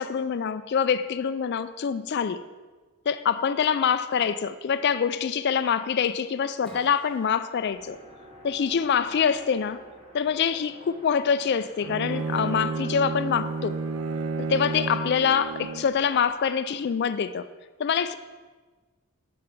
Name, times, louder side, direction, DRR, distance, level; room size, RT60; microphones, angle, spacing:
voice 1, 0.0-2.4 3.1-8.0 8.4-9.8 10.1-13.8 14.4-17.5 17.8-18.1, left 7 dB, 50° left, 0.3 m, -25 dB
Acoustic guitar / Strum, 6.6-10.1, equal, 5° left, 1.2 m, -53 dB
sound 1, 7.5-16.4, equal, 25° right, 1.9 m, -50 dB
Bowed string instrument, 11.8-16.0, right 3 dB, 85° right, 0.6 m, -31 dB
9.9 x 5.9 x 5.3 m
head